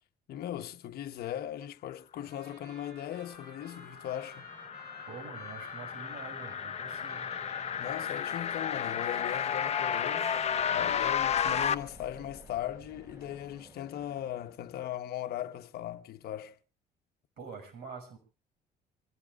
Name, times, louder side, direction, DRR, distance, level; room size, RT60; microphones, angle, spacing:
voice 1, 0.3-4.5 7.7-10.3 10.7-16.6, left 11 dB, 65° left, 1.1 m, -38 dB
Trumpet, 2.1-11.3, right 3 dB, 90° right, 5.0 m, -55 dB
Aircraft, 2.5-15.1, equal, 20° right, 5.4 m, -53 dB
sound 1, 3.4-11.7, left 8 dB, 40° left, 0.9 m, -32 dB
voice 2, 5.1-7.3 17.4-18.2, right 5 dB, 70° right, 6.1 m, -46 dB
26.5 x 17.5 x 2.4 m
cardioid pair, 110°, 17 cm